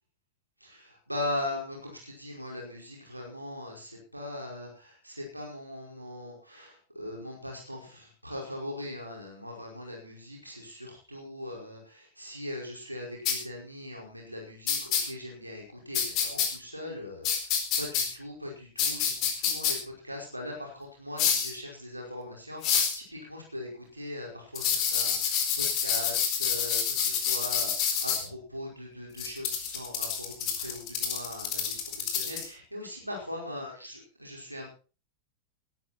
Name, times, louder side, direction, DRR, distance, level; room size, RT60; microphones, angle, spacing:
voice 1, 0.6-34.7, left 1 dB, 85° right, -1 dB, 5.1 m, -40 dB
sound 1, 13.3-13.4 14.7-15.0 15.9-16.5 17.2-18.1 18.8-19.7 21.2-21.5 22.6-23.0 24.6-28.2 29.2-32.5, left 7 dB, 40° left, 4.3 m, -27 dB
17.0 x 13.0 x 4.4 m, 0.35 s
figure-of-eight pair, 90°, 0 cm